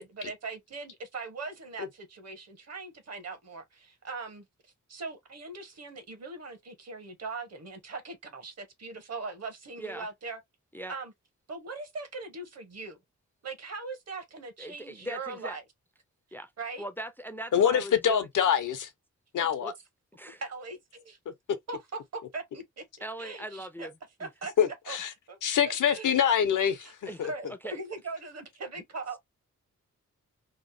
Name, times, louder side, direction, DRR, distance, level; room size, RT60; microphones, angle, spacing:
voice 1, 0.0-4.4 4.9-10.4 10.9-11.1 11.5-13.0 13.4-15.6 16.6-16.9 20.3-21.2 21.7-22.8 23.2-23.9 24.2-25.0 25.3-25.4 25.6-26.1 26.8-26.9 27.3-29.2, right 3 dB, 55° right, 0.8 m, -40 dB
voice 2, 14.6-15.6 16.3-16.5 16.8-18.3 19.6-19.7 20.1-20.4 23.0-23.9 24.2-24.3 27.1-27.3 27.6-27.8, right 1 dB, 5° left, 0.3 m, -40 dB
voice 3, 17.5-18.9 19.3-19.7 24.6-25.1 25.4-26.9 27.2-27.3, left 8 dB, 80° left, 0.7 m, -25 dB
3.0 x 2.1 x 2.5 m
wide cardioid pair, 120°, 31 cm